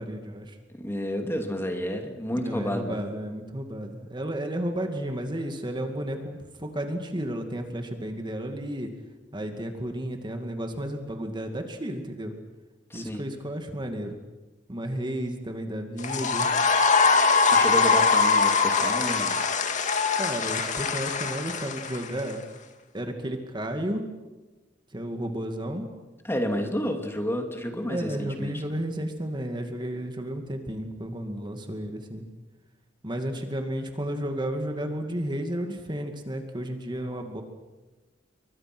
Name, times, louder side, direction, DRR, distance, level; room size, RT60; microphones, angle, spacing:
voice 1, 0.0-0.5 2.4-8.9 9.3-12.3 12.9-14.2 14.7-16.5 20.2-22.4 22.9-24.0 24.9-25.9 27.9-32.2 33.0-37.4, right 1 dB, 25° right, 5 dB, 2.3 m, -32 dB
voice 2, 0.7-3.0 12.9-13.2 17.5-19.4 26.2-28.8, equal, 15° left, 4 dB, 2.7 m, -30 dB
sound 1, 16.0-22.3, left 4 dB, 45° left, 2.1 m, -22 dB
29.5 x 24.0 x 6.2 m, 1.2 s
head